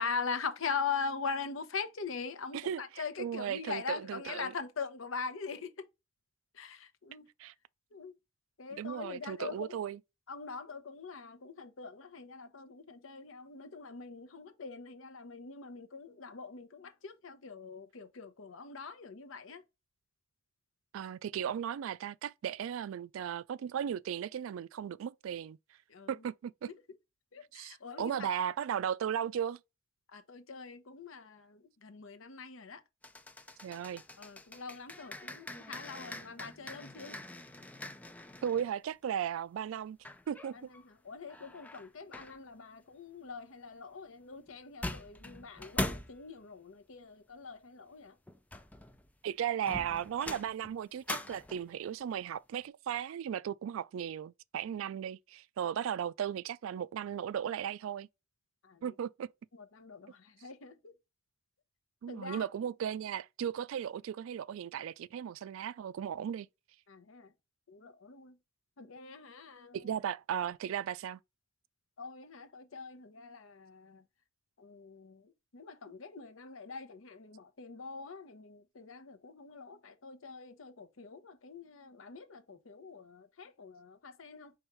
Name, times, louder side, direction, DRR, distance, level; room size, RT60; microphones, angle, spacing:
voice 1, 0.0-5.8 6.5-7.3 7.9-8.2 8.6-9.7 10.3-19.6 25.9-26.2 27.3-28.3 30.1-32.8 34.2-37.2 40.5-48.2 58.6-58.9 59.5-60.9 62.1-62.5 66.9-67.3 67.7-68.4 68.8-69.9 72.0-74.0 74.6-84.5, left 5 dB, 80° left, 0.8 m, -42 dB
voice 2, 3.2-4.5 7.4-7.5 8.7-10.0 20.9-25.6 26.1-26.7 27.5-29.6 33.6-34.0 38.4-40.0 40.3-40.7 49.2-58.1 58.8-59.3 62.0-66.5 69.7-71.2, right 9 dB, 80° right, 0.3 m, -36 dB
sound 1, 33.0-38.7 40.0-40.8 41.3-42.4 44.5-44.6 44.8-46.2 48.3-49.1 49.7-51.7, left 1 dB, 5° left, 0.4 m, -42 dB
4.7 x 3.5 x 3.0 m
head